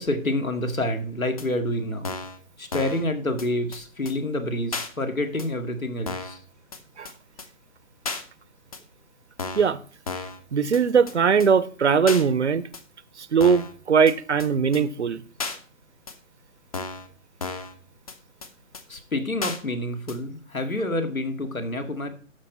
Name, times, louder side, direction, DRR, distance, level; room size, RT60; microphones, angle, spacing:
voice 1, 0.0-2.1 2.6-6.4 18.9-22.1, left 1 dB, 80° left, 2.1 m, -28 dB
sound 1, 1.4-1.5 2.0-2.4 2.7-3.0 3.4-3.5 3.7-3.8 4.1-4.2 4.7-4.9 5.4-5.5 6.1-6.4 6.7-6.8 7.1-7.2 7.4-7.5 8.0-8.2 8.7-8.8 9.4-9.7 10.1-10.4 10.7-10.8 11.1-11.2 11.4-11.5 12.1-12.2 12.7-12.8 13.4-13.7 14.1-14.2 14.4-14.5 14.7-14.8 15.4-15.6 16.1-16.2 16.7-17.1 17.4-17.7 18.1-18.2 18.4-18.5 18.7-18.8 19.4-19.6 20.1-20.2, left 4 dB, 25° left, 0.8 m, -33 dB
voice 2, 10.5-12.6 13.2-15.2, right 6 dB, 55° right, 0.7 m, -20 dB
13.0 x 5.4 x 4.2 m
figure-of-eight pair, 140°, 41 cm